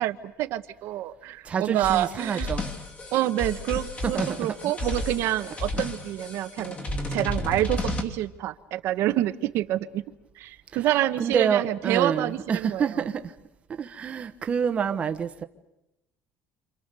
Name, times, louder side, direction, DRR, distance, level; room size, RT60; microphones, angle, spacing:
voice 1, 0.0-2.5 3.1-6.8 7.1-10.0 10.4-13.0, right 14 dB, 60° right, 0.9 m, -27 dB
voice 2, 1.4-2.7 4.0-4.7 5.7-5.8 7.4-7.5 11.2-13.3 13.7-15.4, right 7 dB, 25° right, 1.0 m, -27 dB
sound 1, 1.8-8.0, left 1 dB, 25° left, 2.5 m, -33 dB
28.5 x 27.0 x 6.8 m
cardioid pair, 180°, 5 cm